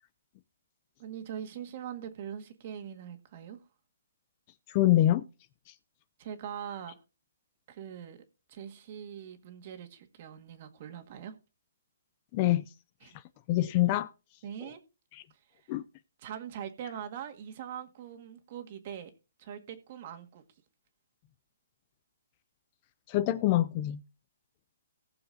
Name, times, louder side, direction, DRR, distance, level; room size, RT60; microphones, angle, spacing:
voice 1, 1.0-3.6 6.2-6.9 7.7-8.2 8.5-11.3 13.0-13.2 14.4-14.8 15.5-15.6 16.2-19.1 19.4-20.4, right 9 dB, 40° right, 1.8 m, -42 dB
voice 2, 4.7-5.3 5.7-5.8 12.3-12.7 13.5-14.1 14.6-14.7 15.1-15.2 15.7-15.8 23.1-24.0, left 14 dB, 30° left, 0.4 m, -25 dB
19.0 x 6.9 x 2.7 m
hypercardioid pair, 160°, 0 cm